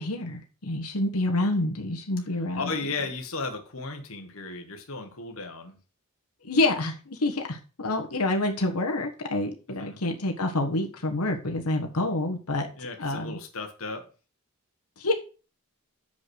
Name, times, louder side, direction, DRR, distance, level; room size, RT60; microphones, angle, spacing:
voice 1, 0.0-2.7 6.4-12.7 13.0-13.4 15.0-15.1, left 2 dB, 90° left, 3 dB, 1.4 m, -27 dB
voice 2, 2.6-5.8 9.7-10.0 12.8-14.1, left 3 dB, 65° left, 5 dB, 1.4 m, -35 dB
7.0 x 5.4 x 6.3 m, 0.35 s
head